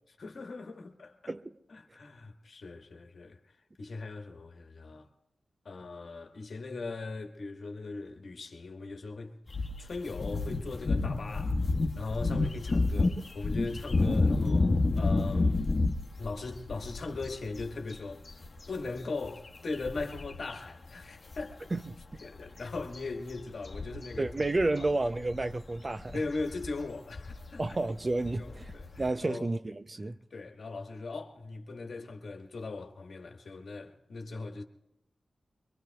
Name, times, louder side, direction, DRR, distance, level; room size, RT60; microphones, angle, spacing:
voice 1, 0.2-1.2 1.7-3.4 3.8-5.1 5.6-9.3 9.8-11.6 12.0-15.6 16.2-18.2 18.7-21.7 22.2-24.3 24.8-24.9 26.1-27.6 28.4-29.5 30.3-34.6, left 3 dB, 75° left, 1.4 m, -39 dB
voice 2, 1.3-1.6 21.7-22.0 24.2-26.2 27.6-28.7 29.0-30.2, right 2 dB, 40° right, 0.5 m, -31 dB
sound 1, 9.5-20.6 20.8-21.0 21.3-29.1, left 3 dB, 55° left, 1.2 m, -30 dB
24.5 x 23.5 x 2.3 m
cardioid pair, 45°, 0 cm